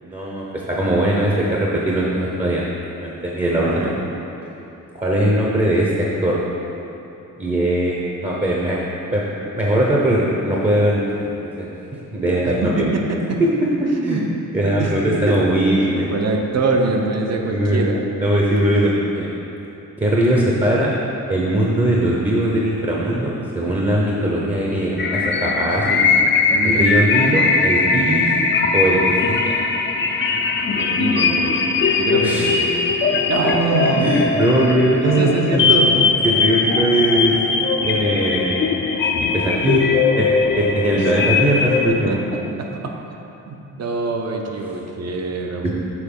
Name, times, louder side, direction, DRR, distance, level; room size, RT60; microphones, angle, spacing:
voice 1, 0.0-2.6 3.0-3.9 4.9-6.4 7.4-8.8 9.1-11.7 12.1-12.9 13.4-13.5 13.8-14.2 14.5-16.1 17.5-19.3 20.0-20.9 21.3-26.0 26.6-28.3 28.7-29.0 29.4-29.5 32.2-32.5 33.9-35.7 36.2-37.3 37.8-38.9 39.3-39.8 40.2-42.2 45.6-45.7, right 1 dB, 20° right, -4 dB, 0.7 m, -20 dB
voice 2, 12.4-13.4 14.0-14.3 14.6-15.4 15.8-18.0 26.5-27.0 30.8-31.6 32.0-32.6 33.2-34.1 35.0-36.0 40.9-41.1 41.9-42.9 43.5-45.7, right 3 dB, 50° right, 2 dB, 0.7 m, -24 dB
sound 1, 25.0-41.9, left 4 dB, 35° left, 0.5 m, -19 dB
7.1 x 4.0 x 5.3 m, 2.9 s
wide cardioid pair, 135°, 32 cm